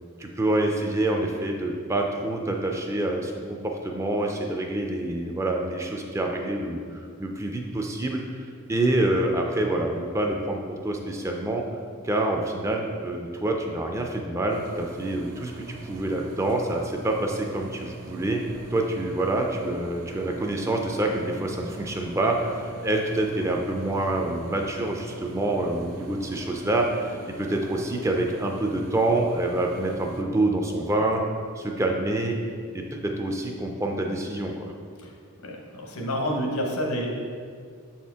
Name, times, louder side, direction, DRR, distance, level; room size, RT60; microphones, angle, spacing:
voice 1, 0.2-11.6 12.0-18.4 18.7-31.2 31.6-32.4 32.7-34.7, right 2 dB, 15° right, 2 dB, 0.3 m, -27 dB
sound 1, 14.5-30.2, right 3 dB, 75° right, 0.5 m, -43 dB
voice 2, 35.4-37.1, equal, 75° left, 0 dB, 1.0 m, -29 dB
6.8 x 4.3 x 3.5 m, 2.1 s
head